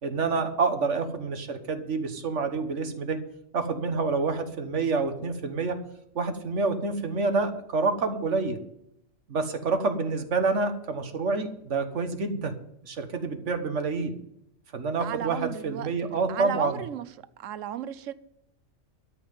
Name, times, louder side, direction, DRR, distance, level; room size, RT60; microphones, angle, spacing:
voice 1, 0.0-3.2 3.5-5.8 6.1-8.6 9.3-12.5 12.8-14.2 14.7-16.8, right 4 dB, 70° right, 7 dB, 1.7 m, -28 dB
voice 2, 15.0-17.1 17.4-18.1, right 11 dB, 85° right, 16 dB, 1.0 m, -34 dB
13.0 x 5.6 x 9.4 m, 0.77 s
omnidirectional pair, 1.3 m